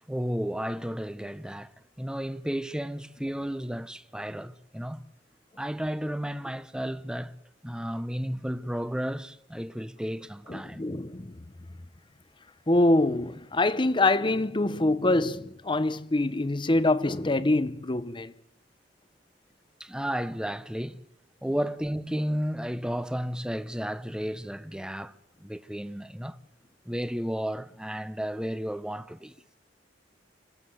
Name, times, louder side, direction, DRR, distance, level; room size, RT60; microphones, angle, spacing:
voice 1, 0.1-1.7 2.0-5.1 5.6-7.4 7.6-10.9 19.8-21.0 21.4-25.1 25.4-26.4 26.9-29.4, equal, 5° right, 0.8 m, -33 dB
voice 2, 10.5-11.4 12.7-18.3, left 2 dB, 25° left, 0.9 m, -25 dB
25.5 x 17.5 x 8.0 m
head